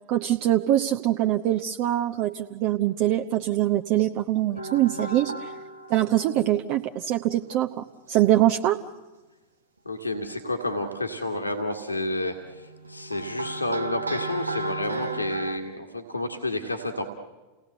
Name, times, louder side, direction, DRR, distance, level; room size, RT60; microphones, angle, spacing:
voice 1, 0.1-5.5 5.9-8.8, right 13 dB, 45° right, 4 dB, 0.9 m, -23 dB
sound 1, 4.6-6.9 7.3-7.7 9.9-10.0 11.1-11.7 12.4-15.6, right 2 dB, 80° right, 1.2 m, -35 dB
voice 2, 9.9-17.1, left 1 dB, 85° left, 5 dB, 1.8 m, -30 dB
29.0 x 18.0 x 7.9 m, 1.2 s
figure-of-eight pair, 90°, 0 cm